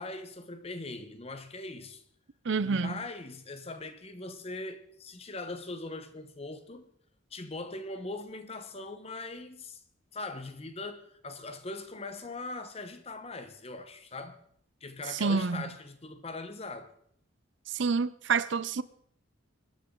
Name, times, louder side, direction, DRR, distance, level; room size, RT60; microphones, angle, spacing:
voice 1, 0.0-2.0 2.6-6.9 7.3-9.8 10.1-14.4 14.8-16.9, left 2 dB, 30° left, 1.1 m, -41 dB
voice 2, 2.4-3.0 15.1-15.6 17.7-18.8, right 5 dB, 60° right, 0.5 m, -28 dB
24.5 x 10.5 x 3.8 m
head